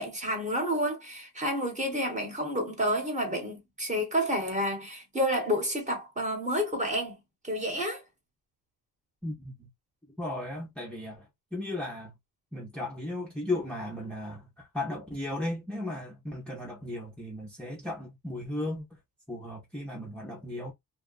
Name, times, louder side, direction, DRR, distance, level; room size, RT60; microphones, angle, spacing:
voice 1, 0.0-7.2 7.4-8.0, equal, 20° right, 1.1 m, -30 dB
voice 2, 9.2-9.7 10.2-11.3 11.5-12.1 12.5-18.9 19.3-20.7, left 1 dB, 5° left, 0.7 m, -35 dB
2.9 x 2.3 x 2.3 m
wide cardioid pair, 160°, 39 cm